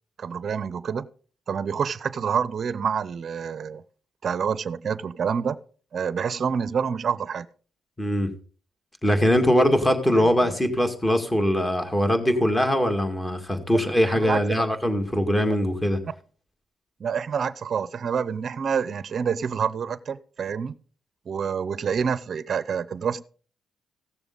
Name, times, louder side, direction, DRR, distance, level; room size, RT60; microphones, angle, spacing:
voice 1, 0.2-1.1 1.5-3.8 4.2-5.6 5.9-7.5 10.1-10.3 14.1-14.7 15.5-15.6 17.0-20.7 21.3-23.2, right 6 dB, 50° right, 16 dB, 0.6 m, -27 dB
voice 2, 8.0-8.3 9.0-16.0, equal, 15° left, 6 dB, 2.1 m, -22 dB
16.0 x 7.0 x 3.9 m, 0.42 s
cardioid pair, 90°, 0 cm